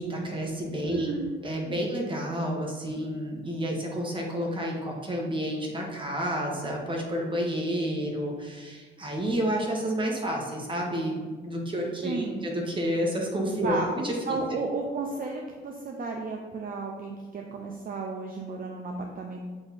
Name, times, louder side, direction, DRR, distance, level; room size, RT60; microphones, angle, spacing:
voice 1, 0.0-1.1 1.4-14.4, equal, 25° right, -1 dB, 1.4 m, -30 dB
voice 2, 0.8-1.3 1.6-1.9 12.0-12.4 13.6-13.9 14.3-19.4, right 3 dB, 45° right, 1 dB, 0.6 m, -33 dB
7.8 x 2.9 x 4.2 m, 1.4 s
cardioid pair, 90°, 20 cm